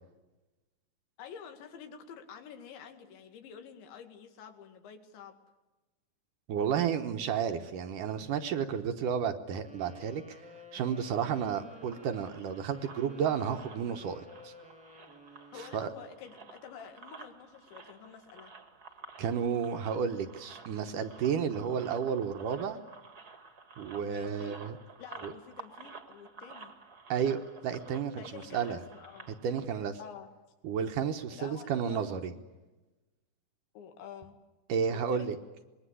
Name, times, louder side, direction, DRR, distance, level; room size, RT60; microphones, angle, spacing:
voice 1, 1.2-5.4 15.5-18.5 24.0-24.6 25.0-26.7 28.1-29.3 30.0-30.3 31.3-32.2 33.7-34.4 34.9-35.3, left 7 dB, 85° left, 6 dB, 4.5 m, -49 dB
voice 2, 6.5-10.4 10.7-14.5 15.6-15.9 19.2-22.8 23.8-24.8 25.2-25.3 27.1-28.8 29.4-30.0 30.6-32.3 34.7-35.4, right 7 dB, 70° right, 7 dB, 2.1 m, -32 dB
Wind instrument woodwind instrument, 9.6-16.1, right 1 dB, ahead, 1.8 m, -53 dB
sound 1, 11.2-29.7, right 4 dB, 35° right, 1.5 m, -52 dB
26.0 x 21.5 x 9.9 m, 1.1 s
omnidirectional pair, 5.1 m